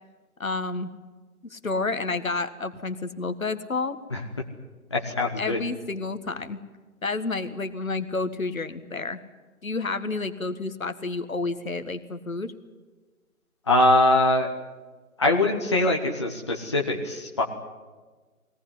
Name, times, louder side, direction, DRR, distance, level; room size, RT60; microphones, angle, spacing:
voice 1, 0.4-0.9 1.4-4.0 5.4-6.6 7.0-9.2 9.6-12.5, left 3 dB, 65° left, 10 dB, 1.7 m, -30 dB
voice 2, 4.9-5.6 13.7-14.5 15.2-17.4, left 1 dB, 20° left, 1 dB, 1.0 m, -22 dB
22.5 x 18.5 x 9.9 m, 1.3 s
figure-of-eight pair, 160°, 44 cm